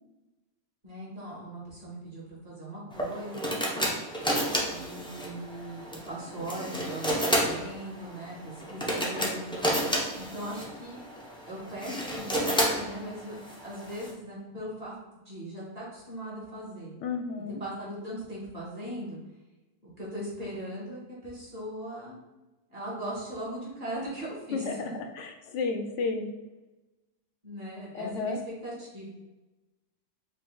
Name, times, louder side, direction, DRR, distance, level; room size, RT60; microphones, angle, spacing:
voice 1, 0.8-3.6 4.6-9.7 10.1-11.0 11.4-14.9 15.3-16.9 17.6-19.2 19.8-22.2 22.7-24.8 27.4-29.1, right 1 dB, 30° right, -6 dB, 1.8 m, -39 dB
sound 1, 2.9-14.1, equal, 5° left, 0.5 m, -31 dB
voice 2, 17.0-17.6 24.5-26.3 27.9-28.4, left 4 dB, 70° left, 5 dB, 0.9 m, -32 dB
4.9 x 2.7 x 3.8 m, 1.1 s
omnidirectional pair, 1.3 m